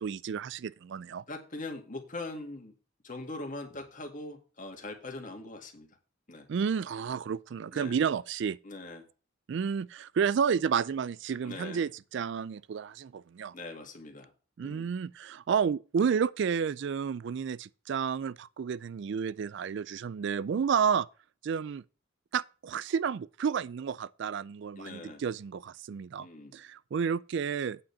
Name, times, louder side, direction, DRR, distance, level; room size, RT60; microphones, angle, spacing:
voice 1, 0.0-1.2 6.5-8.6 9.5-13.5 14.6-21.1 21.4-21.8 22.3-26.3 26.5-27.8, right 6 dB, 60° right, 0.3 m, -31 dB
voice 2, 1.3-2.7 3.0-5.9 6.3-6.5 7.7-8.0 8.6-9.1 11.4-11.8 13.5-14.3 14.6-14.9 24.8-25.2 26.2-26.5, left 2 dB, 40° left, 2.0 m, -41 dB
8.7 x 5.1 x 7.0 m
head